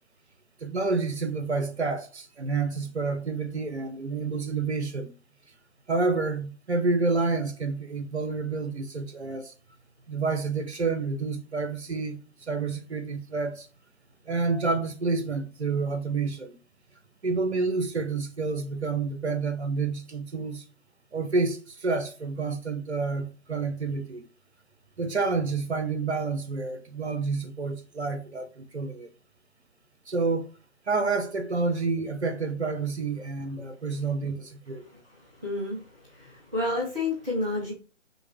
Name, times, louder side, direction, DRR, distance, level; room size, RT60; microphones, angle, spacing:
voice 1, 0.6-5.1 5.9-9.5 10.1-13.7 14.3-16.6 17.2-20.6 21.1-24.3 25.0-29.1 30.1-30.5 30.9-34.8, right 4 dB, 60° right, 1.2 m, -29 dB
voice 2, 35.4-37.7, left 2 dB, 5° right, 0.7 m, -30 dB
6.0 x 2.4 x 3.6 m
figure-of-eight pair, 140°, 37 cm